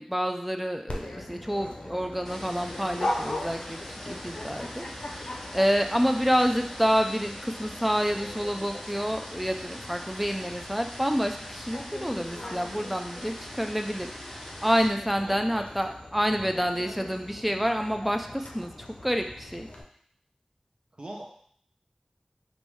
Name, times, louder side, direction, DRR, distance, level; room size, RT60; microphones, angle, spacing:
voice 1, 0.0-14.1 14.6-18.7 19.0-19.7, equal, 5° right, 5 dB, 0.4 m, -28 dB
Dog, 0.9-19.8, left 1 dB, 80° left, 0.5 m, -40 dB
sound 1, 2.2-14.9, equal, 10° left, 0.7 m, -43 dB
voice 2, 15.2-15.7 16.3-16.5 21.0-21.3, right 1 dB, 55° right, -1 dB, 0.7 m, -41 dB
3.4 x 2.6 x 3.1 m, 0.63 s
wide cardioid pair, 50°, 2 cm